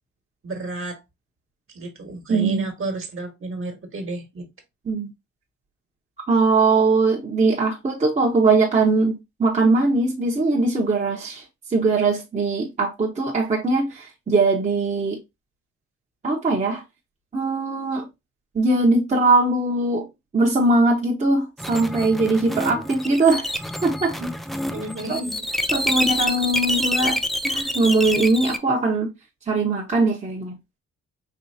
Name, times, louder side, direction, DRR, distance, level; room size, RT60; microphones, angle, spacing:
voice 1, 0.4-1.0 1.7-4.5 24.2-24.3 24.7-25.4, right 2 dB, 45° right, 1.5 m, -31 dB
voice 2, 2.3-2.7 4.8-5.1 6.3-11.4 11.7-15.2 16.2-16.8 17.3-18.1 18.5-20.1 20.3-23.5 23.8-24.1 25.1-25.2 25.7-29.1 29.5-30.6, right 3 dB, 25° right, 1.0 m, -21 dB
sound 1, 21.6-28.6, equal, ahead, 0.3 m, -27 dB
4.6 x 3.0 x 2.7 m
cardioid pair, 90°, 30 cm